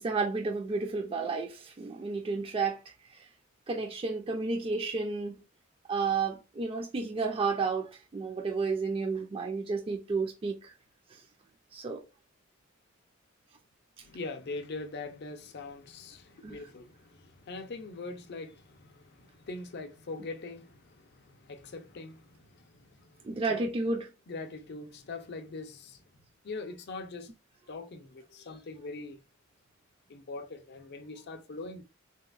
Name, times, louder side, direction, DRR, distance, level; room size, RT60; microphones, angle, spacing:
voice 1, 0.0-2.8 3.1-3.2 3.7-5.4 5.9-10.7 11.7-12.0 16.4-16.6 23.2-24.1, right 4 dB, 25° right, 0.4 m, -31 dB
voice 2, 14.0-23.7 24.3-26.0 26.4-27.3 27.7-29.2 30.1-31.8, left 3 dB, 55° left, 0.5 m, -42 dB
3.3 x 2.8 x 2.3 m
head